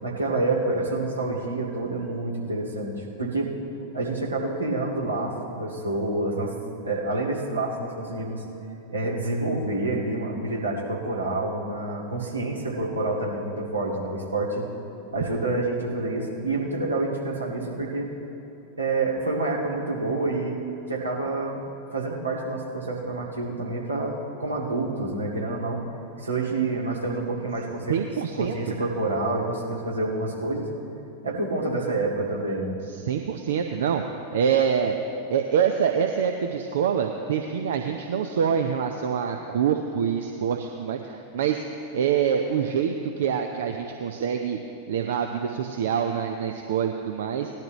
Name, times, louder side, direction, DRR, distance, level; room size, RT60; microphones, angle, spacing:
voice 1, 0.0-3.5 3.9-6.5 6.8-8.4 8.9-14.6 15.1-18.1 18.8-20.6 20.9-21.6 21.9-25.8 26.2-27.9 28.4-30.7 31.2-32.8, right 2 dB, 80° right, -3 dB, 2.0 m, -28 dB
voice 2, 27.9-28.8 33.0-35.0 35.3-44.6 44.9-47.5, right 7 dB, 60° right, 5 dB, 0.6 m, -25 dB
18.5 x 12.0 x 3.1 m, 3.0 s
figure-of-eight pair, 90°, 0 cm